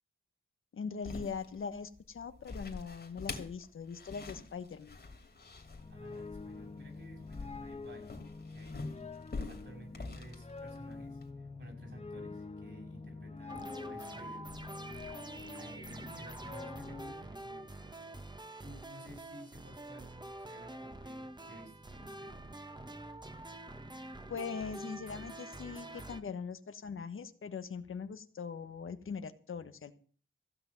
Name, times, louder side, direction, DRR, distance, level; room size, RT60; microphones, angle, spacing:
voice 1, 0.7-5.0 24.3-29.9, left 5 dB, 80° left, 10 dB, 1.2 m, -41 dB
sound 1, 1.0-11.3, left 3 dB, 50° left, 2.7 m, -45 dB
sound 2, 5.3-17.1, left 3 dB, 30° left, 1.3 m, -46 dB
voice 2, 5.9-15.0 15.5-22.7, right 1 dB, 65° right, 1 dB, 6.6 m, -55 dB
sound 3, 13.5-26.2, right 1 dB, 20° right, 1.4 m, -46 dB
15.5 x 6.0 x 9.2 m, 0.42 s
cardioid pair, 65°, 21 cm